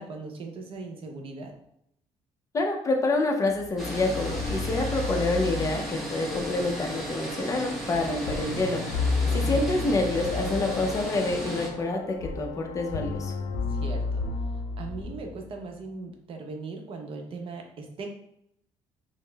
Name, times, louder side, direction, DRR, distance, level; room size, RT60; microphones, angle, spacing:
voice 1, 0.0-1.5 9.0-9.6 13.7-14.2 14.8-18.1, right 3 dB, 50° right, 3 dB, 0.6 m, -39 dB
voice 2, 2.5-8.8 9.3-13.3, left 2 dB, 25° left, 2 dB, 0.6 m, -27 dB
sound 1, 3.5-15.6, left 4 dB, 85° left, 0.6 m, -32 dB
sound 2, 3.8-11.7, equal, ahead, 0.9 m, -36 dB
5.0 x 2.0 x 2.2 m, 0.75 s
cardioid pair, 120°, 12 cm